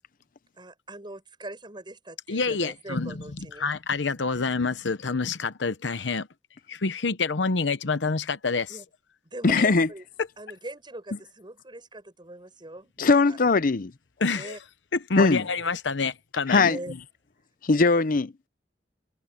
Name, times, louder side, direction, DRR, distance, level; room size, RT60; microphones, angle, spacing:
voice 1, 0.6-3.7 6.1-6.2 8.7-8.8 9.3-10.0 10.4-13.4 14.3-14.6 15.2-15.5 15.9-16.0 16.6-16.9, right 1 dB, 25° right, 6.9 m, -42 dB
voice 2, 2.3-3.2 3.6-6.3 6.7-8.8 9.5-9.6 14.2-14.6 14.9-16.7, left 4 dB, 85° left, 0.9 m, -27 dB
voice 3, 9.4-9.9 13.0-13.9 15.2-15.4 16.5-16.8 17.6-18.3, left 4 dB, 50° left, 0.7 m, -20 dB
head